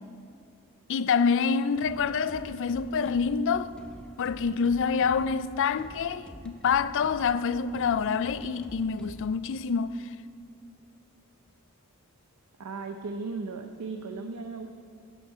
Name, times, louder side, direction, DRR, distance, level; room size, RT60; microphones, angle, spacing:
voice 1, 0.9-3.7 4.2-10.1, left 6 dB, 60° left, 0.4 m, -27 dB
sound 1, 1.7-9.5, equal, 5° left, 0.7 m, -47 dB
voice 2, 12.6-14.7, right 4 dB, 90° right, 0.6 m, -36 dB
12.0 x 9.2 x 5.6 m
head